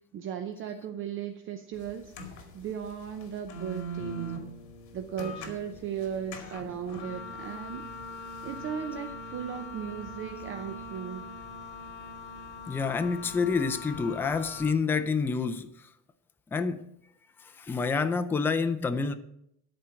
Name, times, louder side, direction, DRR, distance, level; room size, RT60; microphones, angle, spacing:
voice 1, 0.1-4.4 4.9-7.9 8.4-11.3, right 8 dB, 35° right, 0.7 m, -37 dB
sound 1, 1.8-14.7, left 1 dB, 50° left, 2.2 m, -42 dB
voice 2, 12.7-15.7 16.5-16.9 17.4-19.1, left 5 dB, 5° left, 0.3 m, -28 dB
13.0 x 4.5 x 7.5 m
cardioid pair, 150°, 37 cm